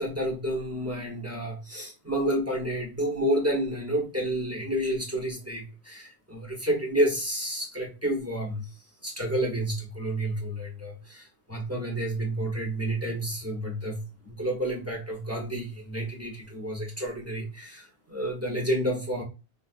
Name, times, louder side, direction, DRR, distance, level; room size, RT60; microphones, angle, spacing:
voice 1, 0.0-8.7 9.0-19.2, right 1 dB, 15° right, -1 dB, 0.9 m, -30 dB
4.0 x 2.5 x 2.4 m, 0.30 s
omnidirectional pair, 1.1 m